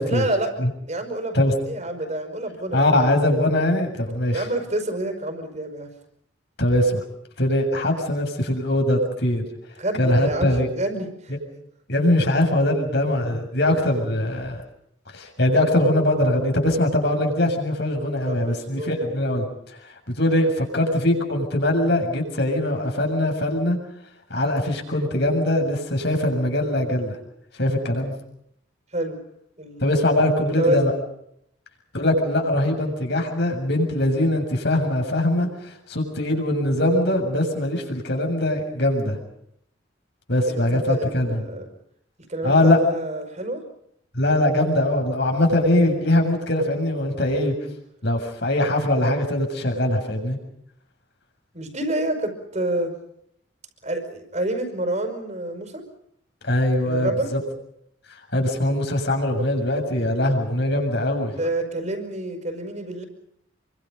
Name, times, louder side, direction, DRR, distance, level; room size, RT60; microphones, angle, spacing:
voice 1, 0.1-0.5 0.9-1.4 1.7-2.9 4.3-5.9 9.8-11.3 18.3-18.9 28.9-29.2 29.6-30.1 30.6-30.9 40.5-41.7 42.3-43.6 51.5-52.9 53.8-55.9 56.8-57.3 61.4-63.0, right 1 dB, 35° right, 7 dB, 5.4 m, -28 dB
voice 2, 2.7-4.5 6.6-7.0 7.4-9.4 10.0-10.7 11.9-14.6 15.1-19.5 20.1-23.8 24.3-27.2 27.6-28.1 29.8-30.9 31.9-39.2 40.3-41.4 42.4-42.8 44.1-47.5 48.0-50.4 56.4-57.4 58.3-61.4, left 1 dB, 60° left, 3 dB, 7.2 m, -22 dB
28.5 x 24.5 x 5.4 m, 0.73 s
head